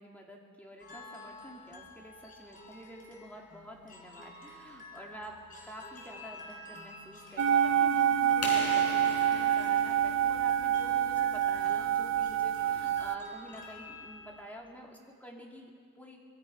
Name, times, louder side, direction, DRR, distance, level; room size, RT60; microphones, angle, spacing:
voice 1, 0.0-5.4 5.6-15.7 16.0-16.2, equal, 5° left, 0 dB, 2.4 m, -49 dB
sound 1, 0.8-14.5, left 1 dB, 40° left, 4.1 m, -50 dB
sound 2, 7.4-13.2, right 9 dB, 60° right, 0.5 m, -27 dB
sound 3, 8.4-11.1, left 3 dB, 85° left, 5.0 m, -40 dB
24.0 x 21.5 x 5.9 m, 2.1 s
head